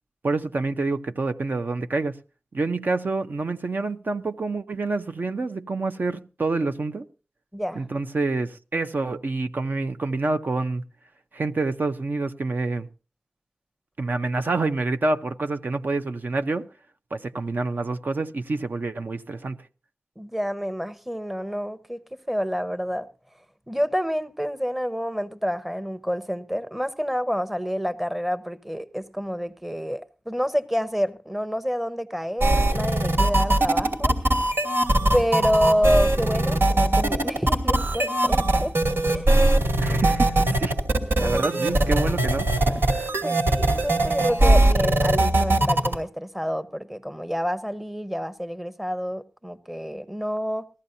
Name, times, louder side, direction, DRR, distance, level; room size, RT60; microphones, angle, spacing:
voice 1, 0.2-2.2 2.5-7.1 7.8-10.8 11.3-12.9 14.0-16.6 17.1-19.6 39.8-40.7 41.2-42.8, right 3 dB, 55° right, 0.7 m, -27 dB
voice 2, 7.5-7.9 20.2-23.1 23.7-34.2 35.1-38.7 39.1-39.3 41.3-41.4 43.2-50.6, equal, 5° right, 0.8 m, -28 dB
sound 1, 32.4-45.9, right 1 dB, 85° right, 2.6 m, -20 dB
19.5 x 14.5 x 2.7 m
wide cardioid pair, 95°, 4 cm